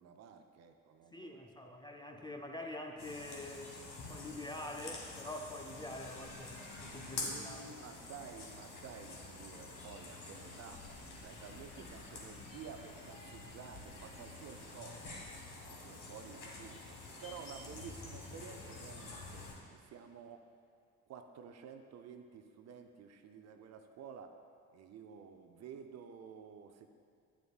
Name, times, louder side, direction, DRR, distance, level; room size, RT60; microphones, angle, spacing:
voice 1, 0.0-1.8 6.8-10.8 11.2-15.4 15.6-20.5 21.1-24.4 24.7-26.9, right 7 dB, 40° right, 6 dB, 0.6 m, -52 dB
voice 2, 1.1-3.8 4.0-7.6, left 1 dB, 10° left, 3 dB, 0.5 m, -46 dB
sound 1, 3.0-19.5, left 3 dB, 55° left, 1.6 m, -48 dB
9.5 x 7.7 x 2.4 m, 2.2 s
figure-of-eight pair, 55°, 41 cm